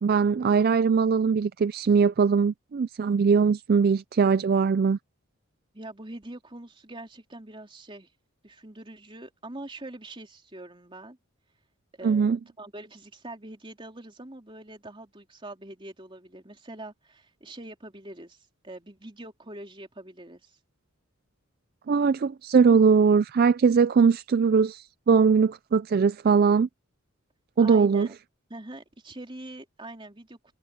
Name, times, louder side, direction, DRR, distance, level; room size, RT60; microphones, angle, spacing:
voice 1, 0.0-5.0 12.0-12.4 21.9-26.7 27.6-28.1, right 5 dB, 45° right, 0.3 m, -21 dB
voice 2, 5.7-8.1 8.4-11.2 11.9-20.6 27.6-28.2 28.5-30.4, right 1 dB, 25° right, 3.5 m, -43 dB
head